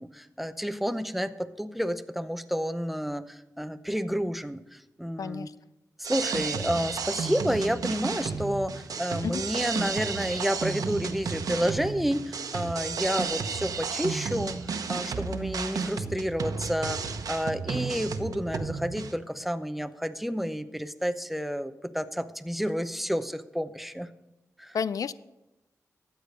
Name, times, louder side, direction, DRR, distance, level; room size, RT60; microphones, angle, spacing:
voice 1, 0.0-5.5 6.0-14.6 14.9-24.1 24.6-24.8, equal, ahead, 11 dB, 0.7 m, -30 dB
voice 2, 5.2-5.5 9.2-9.4 24.7-25.1, left 6 dB, 70° left, 17 dB, 0.4 m, -30 dB
sound 1, 6.0-19.1, right 5 dB, 85° right, 0.9 m, -32 dB
13.0 x 8.4 x 5.3 m, 0.97 s
cardioid pair, 65°, 6 cm